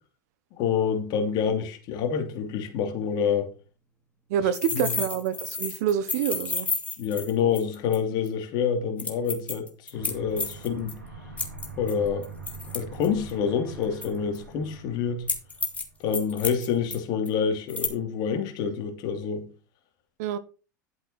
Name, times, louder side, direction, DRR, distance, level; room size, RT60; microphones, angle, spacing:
voice 1, 0.5-3.5 4.7-5.0 7.0-11.0 11.8-12.3 12.7-15.2 16.0-19.5, left 7 dB, 45° left, 2.8 m, -27 dB
voice 2, 4.3-6.7 20.2-20.4, right 9 dB, 55° right, 1.3 m, -27 dB
sound 1, 4.5-8.0 8.3-8.4 9.0-10.9 11.4-13.3 14.0-14.4 15.3-15.8 16.1-17.0 17.3-17.4 17.7-17.9, left 4 dB, 15° left, 2.6 m, -31 dB
Aircraft, 9.9-16.0, right 3 dB, 80° right, 4.4 m, -43 dB
12.0 x 7.7 x 4.3 m
figure-of-eight pair, 85°, 10 cm